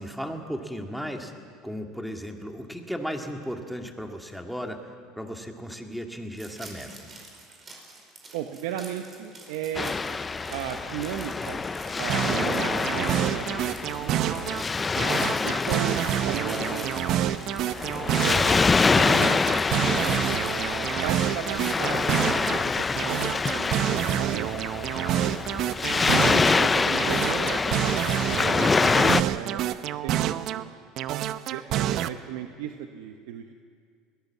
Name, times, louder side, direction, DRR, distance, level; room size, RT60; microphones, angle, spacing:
voice 1, 0.0-1.3 1.6-4.8 5.2-7.1 22.6-23.0, equal, ahead, 3 dB, 2.1 m, -35 dB
sound 1, 6.4-22.3, right 3 dB, 30° right, 4.9 m, -46 dB
voice 2, 8.3-9.9 10.5-11.6 12.0-14.3 15.4-16.0 16.2-17.0 18.1-18.5 19.0-19.4 20.0-20.3 21.0-22.2 22.5-24.6 26.1-29.8 30.0-30.7 31.5-33.5, right 10 dB, 80° right, 5 dB, 1.1 m, -36 dB
Waves surf, 9.7-29.2, left 4 dB, 20° left, 0.5 m, -26 dB
sound 2, 12.1-14.6 15.0-18.6 19.0-22.6 23.0-26.6 27.0-30.6 31.0-32.1, right 12 dB, 55° right, 0.8 m, -28 dB
21.5 x 18.0 x 7.4 m, 2.1 s
supercardioid pair, 110°, 0 cm